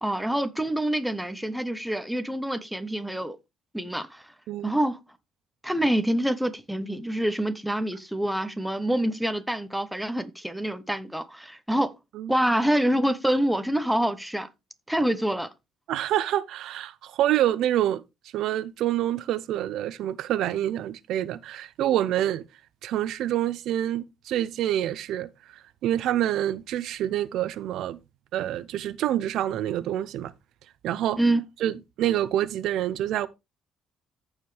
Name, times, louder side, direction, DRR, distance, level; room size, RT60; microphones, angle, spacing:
voice 1, 0.0-3.4 3.7-4.2 4.6-5.0 5.6-11.9 12.3-14.5 14.9-15.5 31.2-31.4, right 1 dB, ahead, 0.7 m, -26 dB
voice 2, 15.9-18.0 18.3-22.4 22.8-25.3 25.8-28.0 28.3-30.3 30.8-31.2 31.6-33.3, right 12 dB, 65° right, 0.6 m, -27 dB
14.5 x 4.9 x 3.2 m
cardioid pair, 140°, 0 cm